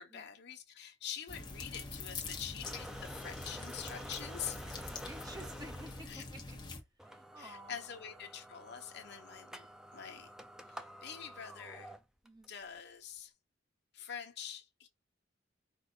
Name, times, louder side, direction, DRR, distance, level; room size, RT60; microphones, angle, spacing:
voice 1, 0.0-4.7 6.1-6.2 7.4-10.3 10.7-11.9 12.5-13.3 13.9-14.9, left 8 dB, 60° left, 0.9 m, -45 dB
sound 1, 1.3-6.8, left 3 dB, 20° left, 1.0 m, -45 dB
sound 2, 2.6-6.1 6.5-6.6 7.0-12.5, equal, 5° right, 0.3 m, -50 dB
voice 2, 5.1-6.6 7.0-7.8 12.2-12.5, right 1 dB, 20° right, 0.7 m, -51 dB
4.9 x 2.4 x 3.8 m
head